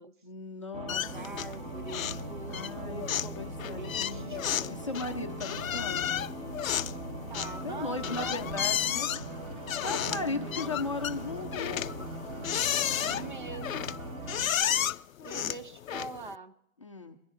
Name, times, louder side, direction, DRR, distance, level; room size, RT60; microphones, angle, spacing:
voice 1, 0.2-1.0 2.5-3.0 3.4-6.1 7.6-9.2 9.8-11.9 15.4-15.5 16.8-17.2, left 3 dB, 25° left, 3 dB, 0.6 m, -37 dB
sound 1, 0.7-14.5, right 1 dB, 20° right, 1.3 m, -40 dB
sound 2, 0.9-1.6 1.9-2.3 2.5-16.3, left 11 dB, 80° left, 0.5 m, -33 dB
voice 2, 0.9-4.9 7.3-9.0 10.0-10.9 13.0-13.9 15.2-16.5, right 3 dB, 35° right, 11 dB, 0.8 m, -44 dB
sound 3, 7.4-14.8, equal, 85° right, 2.3 m, -53 dB
23.5 x 9.9 x 3.6 m, 0.81 s
hypercardioid pair, 170°, 40 cm